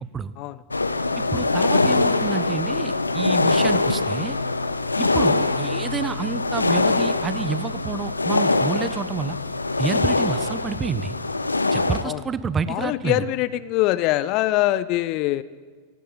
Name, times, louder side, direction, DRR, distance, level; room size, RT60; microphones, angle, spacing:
sound 1, 0.7-12.0, left 3 dB, 80° left, 0.9 m, -23 dB
voice 1, 1.3-4.4 5.0-9.4 9.8-11.2 11.7-13.2, right 5 dB, 20° right, 15 dB, 1.0 m, -28 dB
voice 2, 12.7-15.4, left 15 dB, 40° left, 17 dB, 0.6 m, -23 dB
17.0 x 17.0 x 8.8 m, 1.5 s
figure-of-eight pair, 90°, 0 cm